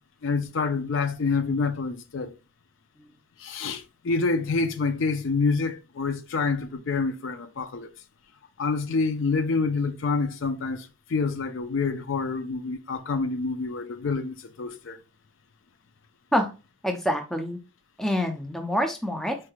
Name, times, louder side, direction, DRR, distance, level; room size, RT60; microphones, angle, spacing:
voice 1, 0.2-2.3 3.4-7.9 8.6-15.0, left 4 dB, 65° left, 0.4 m, -27 dB
voice 2, 16.8-17.6 18.0-19.4, equal, ahead, 0.4 m, -26 dB
4.5 x 3.1 x 2.3 m
head